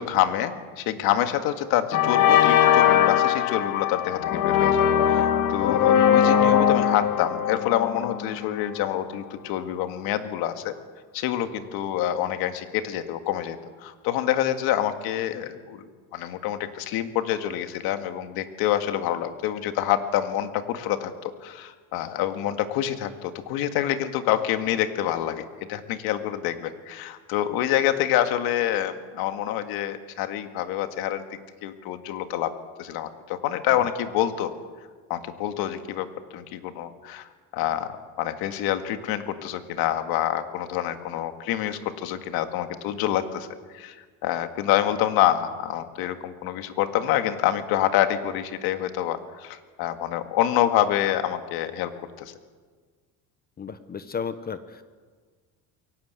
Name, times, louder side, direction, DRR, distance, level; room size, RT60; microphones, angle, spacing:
voice 1, 0.0-10.7 11.1-15.8 16.1-25.4 25.7-31.3 31.6-32.5 32.8-34.5 35.1-36.1 36.3-43.5 43.7-44.0 44.2-52.3, left 12 dB, 75° left, 8 dB, 2.0 m, -27 dB
sound 1, 1.2-1.4 1.9-8.7, left 9 dB, 60° left, 1.9 m, -21 dB
voice 2, 53.6-55.0, left 6 dB, 25° left, 12 dB, 1.0 m, -34 dB
23.0 x 18.0 x 8.2 m, 1.5 s
cardioid pair, 135°, 37 cm